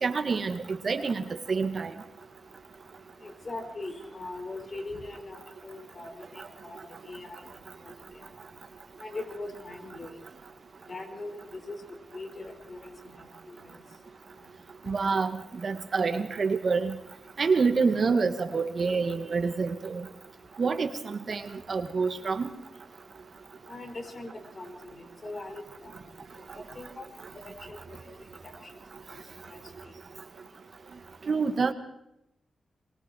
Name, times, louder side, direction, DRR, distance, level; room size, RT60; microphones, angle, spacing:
voice 1, 0.0-1.2 1.5-1.9 14.9-17.0 17.4-20.1 20.6-21.4 21.7-22.5 31.3-31.7, right 4 dB, 55° right, 8 dB, 2.1 m, -27 dB
voice 2, 3.2-6.8 7.1-7.4 7.8-7.9 9.0-10.1 10.9-11.8 12.1-13.7 23.7-24.3 24.5-26.0 26.7-27.1 27.7-28.0 29.5-29.6, left 2 dB, 40° left, 6 dB, 5.5 m, -41 dB
25.0 x 22.0 x 4.8 m, 0.81 s
cardioid pair, 65°, 0 cm